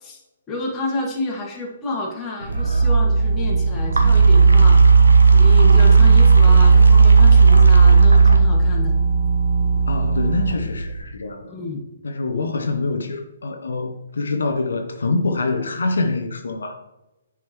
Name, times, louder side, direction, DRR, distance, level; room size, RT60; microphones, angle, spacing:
voice 1, 0.5-4.8 5.3-8.9 11.5-11.8 12.5-12.7, left 2 dB, 20° left, -3 dB, 1.9 m, -30 dB
sound 1, 2.4-11.0, right 4 dB, 80° right, 1.0 m, -13 dB
voice 2, 9.9-11.5 12.0-16.8, left 3 dB, 70° left, 5 dB, 0.7 m, -25 dB
10.5 x 5.0 x 3.0 m, 1.0 s
figure-of-eight pair, 130°, 0 cm